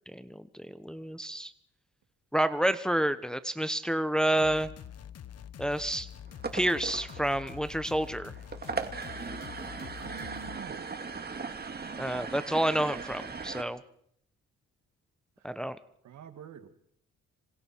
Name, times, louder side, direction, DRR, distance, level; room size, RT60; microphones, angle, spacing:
voice 1, 0.1-1.5 2.3-4.7 5.6-6.1 6.5-8.3 12.0-13.8 15.4-15.8, right 1 dB, ahead, 11 dB, 1.0 m, -29 dB
sound 1, 4.4-10.6, left 9 dB, 55° left, 1.2 m, -46 dB
sound 2, 6.3-13.6, right 4 dB, 30° right, 2.3 m, -39 dB
voice 2, 10.0-11.0 15.4-15.5 16.0-16.7, right 9 dB, 70° right, 8 dB, 2.5 m, -46 dB
26.5 x 25.5 x 4.6 m, 0.70 s
cardioid pair, 90°, 30 cm